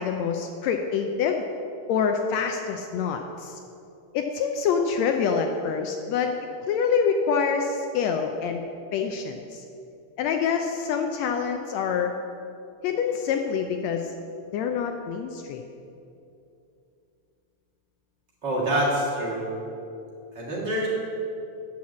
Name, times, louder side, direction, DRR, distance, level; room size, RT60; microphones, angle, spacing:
voice 1, 0.0-1.4 1.9-3.6 4.1-6.4 6.7-8.6 8.9-9.6 10.2-12.1 12.8-14.1 14.5-15.6, left 6 dB, 80° left, 5 dB, 1.7 m, -26 dB
voice 2, 18.4-19.6 20.3-20.9, right 1 dB, 40° right, -6 dB, 2.1 m, -26 dB
8.7 x 5.8 x 7.3 m, 2.7 s
omnidirectional pair, 3.3 m